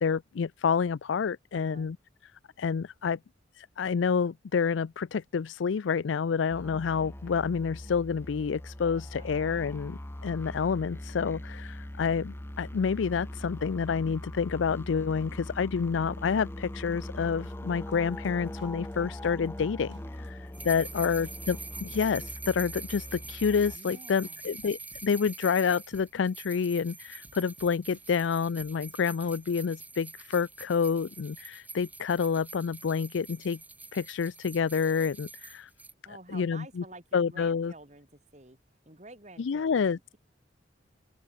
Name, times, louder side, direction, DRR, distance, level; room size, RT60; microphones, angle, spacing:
voice 1, 0.0-2.0 2.6-3.2 3.5-33.6 33.9-35.7 36.1-36.8 37.1-37.7 39.4-40.0, left 6 dB, 90° left, 0.4 m, -28 dB
voice 2, 1.5-1.9 9.2-9.8 20.2-21.2 23.7-24.4 36.0-38.6 38.9-40.2, right 2 dB, 40° right, 4.6 m, -51 dB
sound 1, 6.5-23.8, left 1 dB, 10° left, 0.6 m, -41 dB
sound 2, 17.9-29.6, right 1 dB, 75° right, 7.0 m, -59 dB
sound 3, 20.5-35.9, right 3 dB, 10° right, 2.5 m, -45 dB
open air
head